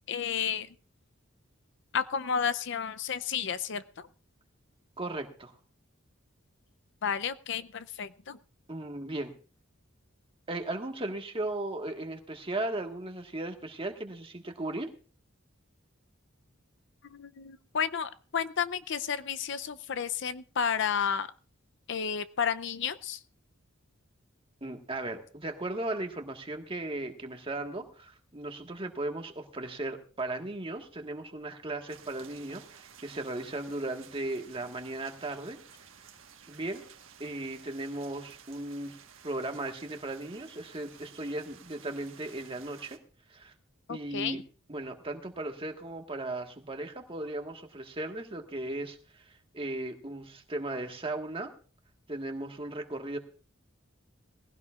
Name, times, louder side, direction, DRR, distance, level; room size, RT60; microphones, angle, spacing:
voice 1, 0.1-0.7 1.9-3.8 7.0-8.4 17.1-21.3 21.9-23.2 43.9-44.4, left 7 dB, 60° left, 13 dB, 0.6 m, -31 dB
voice 2, 5.0-5.5 8.7-9.3 10.5-14.9 24.6-35.6 36.5-36.8 37.2-39.0 39.2-43.0 43.3-43.5 43.9-44.4 44.7-51.5 52.1-53.2, right 2 dB, 25° right, 4 dB, 1.5 m, -36 dB
sound 1, 31.9-43.0, right 7 dB, 75° right, 1.3 m, -54 dB
19.0 x 16.5 x 2.4 m, 0.39 s
head